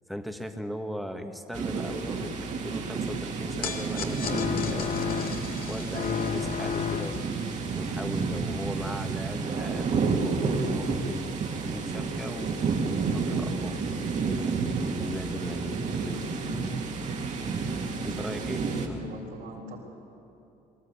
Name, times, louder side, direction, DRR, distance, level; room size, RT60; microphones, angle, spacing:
voice 1, 0.1-5.0 5.7-7.3 7.7-11.3 11.6-13.8 14.2-16.4 17.4-17.5 18.1-19.0, equal, ahead, 5 dB, 1.6 m, -38 dB
sound 1, 1.5-18.9, right 4 dB, 45° right, 2.3 m, -30 dB
sound 2, 3.6-10.0, left 6 dB, 60° left, 2.1 m, -41 dB
sound 3, 4.2-5.6 5.9-7.4, left 8 dB, 45° left, 0.7 m, -31 dB
voice 2, 15.3-16.5 17.9-19.8, right 2 dB, 60° right, -4 dB, 4.1 m, -41 dB
23.0 x 13.5 x 8.8 m, 2.8 s
cardioid pair, 110°, 17 cm